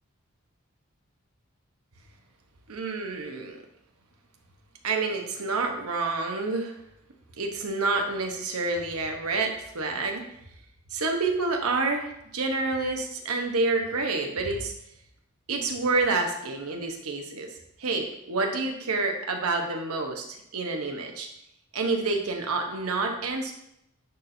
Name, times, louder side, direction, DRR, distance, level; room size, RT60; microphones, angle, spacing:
voice 1, 2.7-3.6 4.8-6.7 7.4-10.2 10.9-14.7 15.5-17.5 17.8-20.2 20.5-21.3 21.7-23.5, right 3 dB, 85° right, 3 dB, 1.0 m, -28 dB
10.5 x 4.3 x 2.7 m, 0.80 s
head